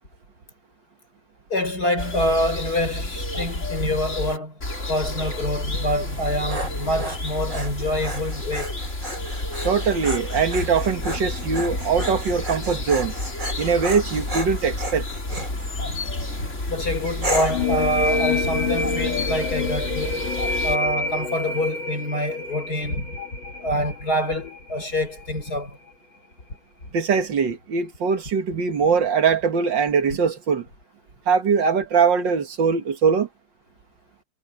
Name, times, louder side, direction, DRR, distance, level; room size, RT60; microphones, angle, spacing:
voice 1, 1.5-4.6 4.9-8.8 15.3-15.4 15.8-16.0 16.4-20.3 20.6-23.2 23.6-25.8, left 1 dB, 55° left, 6.7 m, -26 dB
sound 1, 2.0-20.8, left 2 dB, 40° left, 4.4 m, -30 dB
Dog, 6.1-15.5 16.1-16.5 17.2-17.7, right 1 dB, 45° right, 6.2 m, -33 dB
voice 2, 9.6-13.1 13.6-15.1 26.9-30.7 31.3-33.3, right 6 dB, 80° right, 2.3 m, -21 dB
sound 2, 17.5-24.9, left 3 dB, 90° left, 2.6 m, -27 dB
omnidirectional pair, 2.0 m